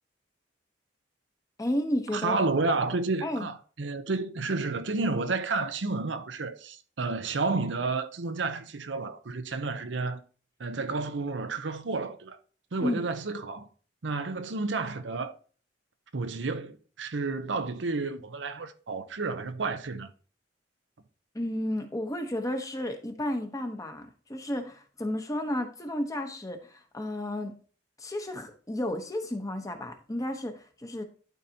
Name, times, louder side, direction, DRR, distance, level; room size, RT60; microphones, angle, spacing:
voice 1, 1.6-2.4 3.2-3.5 12.8-13.0 21.3-27.6 28.0-31.0, left 1 dB, 20° left, 1.0 m, -32 dB
voice 2, 2.1-10.2 10.6-12.4 12.7-13.7 14.0-15.4 16.1-20.1, right 3 dB, 90° right, 0.7 m, -31 dB
12.0 x 4.1 x 2.8 m
head